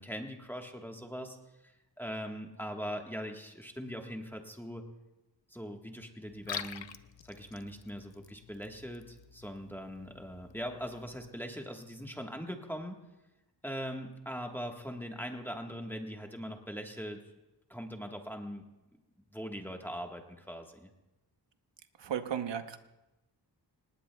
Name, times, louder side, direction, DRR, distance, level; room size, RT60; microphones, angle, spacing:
voice 1, 0.0-1.4 1.6-1.7 2.0-4.9 5.5-6.9 7.2-13.0 13.6-17.2 17.7-18.7 19.3-20.9, equal, 5° left, 2 dB, 1.3 m, -41 dB
Liquid, 6.3-11.3, left 8 dB, 85° left, 0.7 m, -47 dB
voice 2, 22.0-22.8, right 9 dB, 80° right, 8 dB, 0.9 m, -34 dB
26.0 x 19.5 x 2.3 m, 1.0 s
wide cardioid pair, 110°, 43 cm